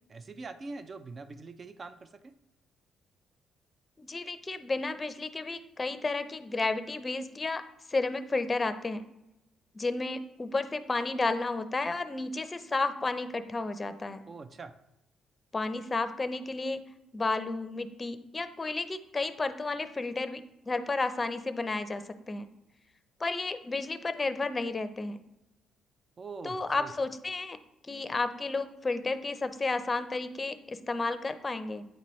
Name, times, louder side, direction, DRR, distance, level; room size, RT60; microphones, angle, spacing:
voice 1, 0.1-2.3 14.3-14.8 26.2-26.9, right 3 dB, 40° right, 11 dB, 0.6 m, -43 dB
voice 2, 4.1-7.6 7.9-9.0 9.7-14.2 15.5-16.8 17.1-20.4 20.7-22.5 23.2-25.2 26.4-27.6 27.9-31.9, left 3 dB, 25° left, 10 dB, 0.6 m, -32 dB
8.9 x 4.1 x 3.1 m, 0.92 s
supercardioid pair, 70°, 0 cm